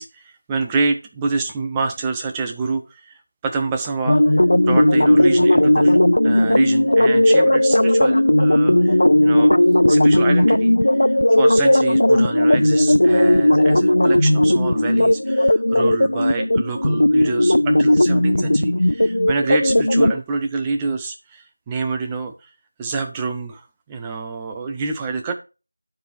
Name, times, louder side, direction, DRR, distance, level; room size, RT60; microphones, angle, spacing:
voice 1, 0.0-4.2 4.7-6.0 6.2-9.5 9.9-10.7 11.0-22.3 22.8-25.3, right 4 dB, 5° right, 3 dB, 0.6 m, -27 dB
sound 1, 4.1-20.2, left 1 dB, 60° left, 0.3 m, -16 dB
12.0 x 4.8 x 3.2 m, 0.30 s
figure-of-eight pair, 175°, 0 cm